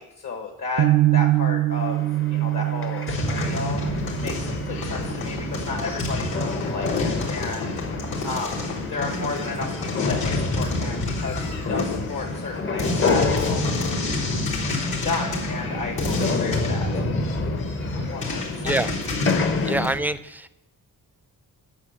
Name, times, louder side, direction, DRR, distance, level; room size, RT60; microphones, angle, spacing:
voice 1, 0.0-2.0 2.3-7.7 8.2-8.6 8.9-13.6 14.6-16.9 18.1-18.7 19.4-19.6, left 3 dB, 60° left, 2 dB, 1.5 m, -33 dB
sound 1, 0.8-6.8, right 16 dB, 80° right, 0.5 m, -25 dB
sound 2, 1.8-19.9, left 4 dB, 35° left, 0.8 m, -30 dB
sound 3, 3.1-20.0, left 2 dB, 85° left, 3.5 m, -28 dB
voice 2, 19.6-20.6, right 2 dB, 5° right, 14 dB, 0.4 m, -26 dB
10.5 x 7.2 x 7.7 m, 0.95 s
wide cardioid pair, 110°, 36 cm